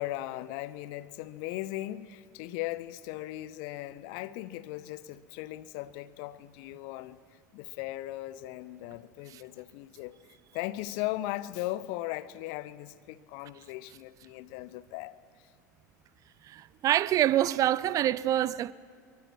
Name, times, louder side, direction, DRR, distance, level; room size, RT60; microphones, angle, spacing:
voice 1, 0.0-7.2 7.5-10.2 10.5-15.2, left 16 dB, 50° left, 0.8 m, -38 dB
voice 2, 16.5-18.7, right 12 dB, 35° right, 0.6 m, -26 dB
24.0 x 23.5 x 6.2 m
figure-of-eight pair, 80°, 10 cm